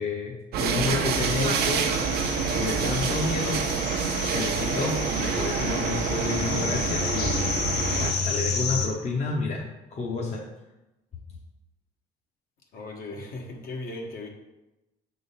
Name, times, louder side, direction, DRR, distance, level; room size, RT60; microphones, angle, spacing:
voice 1, 0.0-1.9 2.5-3.7 4.3-7.7 7.9-10.4, left 3 dB, 40° left, -1 dB, 0.9 m, -30 dB
sound 1, 0.5-8.1, right 6 dB, 70° right, 0.7 m, -27 dB
sound 2, 1.1-8.9, left 5 dB, 80° left, 1.1 m, -31 dB
voice 2, 12.7-14.3, left 2 dB, 60° left, 1 dB, 1.4 m, -37 dB
6.2 x 3.8 x 5.6 m, 0.98 s
cardioid pair, 110°, 17 cm